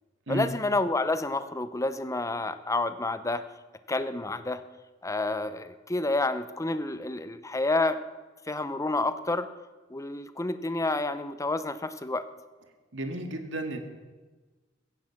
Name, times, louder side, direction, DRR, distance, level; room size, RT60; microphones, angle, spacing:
voice 1, 0.3-3.5 3.9-4.6 5.0-8.0 8.5-9.5 9.9-12.3, left 2 dB, 15° left, 12 dB, 0.8 m, -29 dB
voice 2, 12.9-13.8, right 1 dB, 70° right, 5 dB, 2.0 m, -32 dB
16.0 x 15.5 x 6.0 m, 1.3 s
head